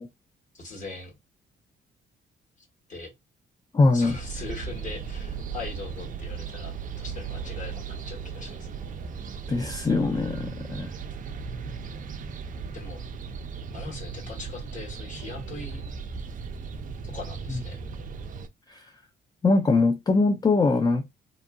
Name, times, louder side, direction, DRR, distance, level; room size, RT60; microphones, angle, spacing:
voice 1, 0.5-1.1 2.9-3.1 3.9-8.7 12.7-13.0 13.7-15.9 17.0-17.8, left 3 dB, 40° left, 1.5 m, -40 dB
voice 2, 3.7-4.2 9.5-10.9 17.5-17.6 18.7-18.9 19.4-21.1, left 3 dB, 20° left, 0.3 m, -22 dB
sound 1, 4.0-18.5, right 5 dB, 40° right, 0.4 m, -37 dB
2.8 x 2.6 x 2.2 m
cardioid pair, 90°, 20 cm